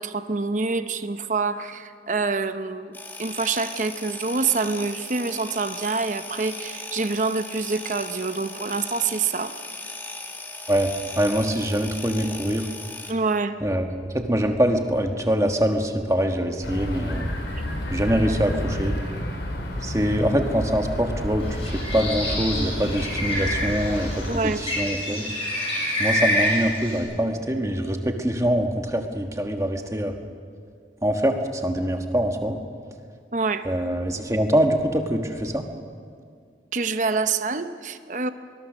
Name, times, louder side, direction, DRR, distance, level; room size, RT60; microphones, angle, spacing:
voice 1, 0.0-9.5 13.1-13.6 24.3-24.7 33.3-33.7 36.7-38.3, right 4 dB, 45° right, 10 dB, 0.8 m, -26 dB
sound 1, 2.9-13.1, left 2 dB, 10° left, 1.5 m, -38 dB
voice 2, 11.2-12.7 13.6-13.9 14.1-17.3 17.9-19.0 19.8-24.1 24.6-25.3 26.0-30.1 31.0-32.6 33.6-35.6, equal, 15° right, 4 dB, 1.4 m, -24 dB
sound 2, 16.6-24.4, equal, 85° left, 4.0 m, -30 dB
Bird, 21.5-27.0, left 1 dB, 35° left, 6.8 m, -27 dB
24.0 x 20.5 x 6.3 m, 2.2 s
head